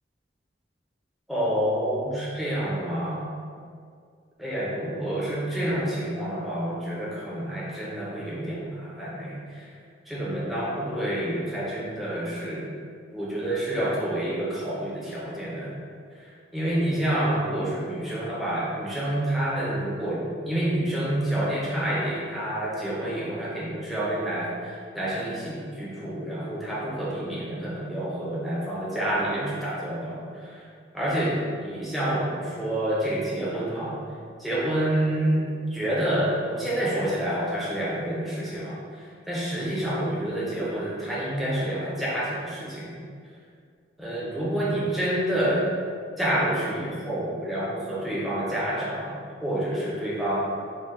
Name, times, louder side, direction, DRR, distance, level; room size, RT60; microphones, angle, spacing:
voice 1, 1.3-3.3 4.4-9.7 10.1-12.7 13.1-15.7 16.2-30.6 30.9-34.0 34.4-43.0 44.0-45.7 46.2-49.1 49.4-50.6, right 1 dB, ahead, -8 dB, 0.8 m, -28 dB
4.2 x 2.4 x 3.7 m, 2.2 s
head